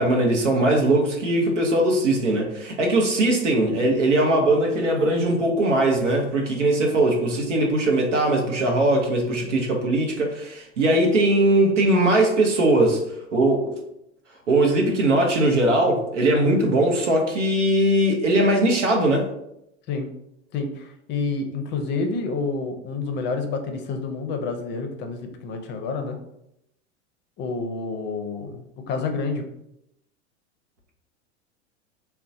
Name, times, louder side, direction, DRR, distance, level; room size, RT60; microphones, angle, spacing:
voice 1, 0.0-13.0 13.3-13.7 14.5-19.3, right 1 dB, 90° right, 1 dB, 0.8 m, -20 dB
voice 2, 20.5-26.2 27.4-29.5, left 4 dB, 30° left, 5 dB, 0.5 m, -29 dB
3.7 x 2.2 x 2.6 m, 0.80 s
hypercardioid pair, 95°, 35 cm